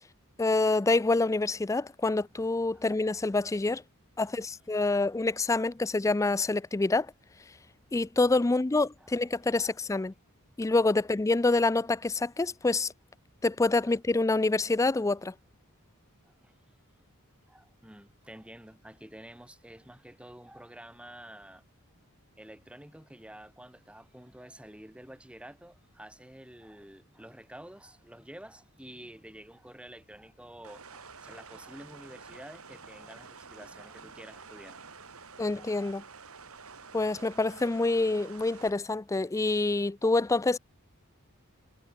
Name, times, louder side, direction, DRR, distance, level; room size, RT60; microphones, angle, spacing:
voice 1, 0.4-3.8 4.2-7.1 7.9-10.1 10.6-12.9 13.4-15.3 35.4-36.0 36.9-40.6, left 3 dB, 15° left, 0.4 m, -26 dB
voice 2, 16.2-16.6 17.5-21.6 22.4-34.8, right 1 dB, 5° right, 1.6 m, -49 dB
sound 1, 30.6-38.7, right 5 dB, 70° right, 3.3 m, -49 dB
head